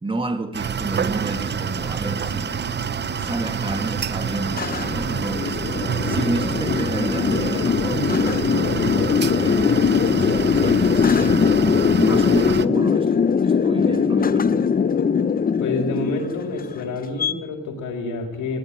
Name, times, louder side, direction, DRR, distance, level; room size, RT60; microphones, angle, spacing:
voice 1, 0.0-2.6 3.2-5.6 6.0-11.4 12.0-14.7, right 2 dB, 15° right, 2.2 m, -30 dB
sound 1, 0.5-12.7, right 7 dB, 35° right, 0.7 m, -27 dB
sound 2, 1.0-17.3, left 6 dB, 30° left, 0.7 m, -21 dB
voice 2, 15.6-18.6, left 3 dB, 85° left, 4.5 m, -28 dB
21.0 x 15.5 x 9.7 m
cardioid pair, 90°, 30 cm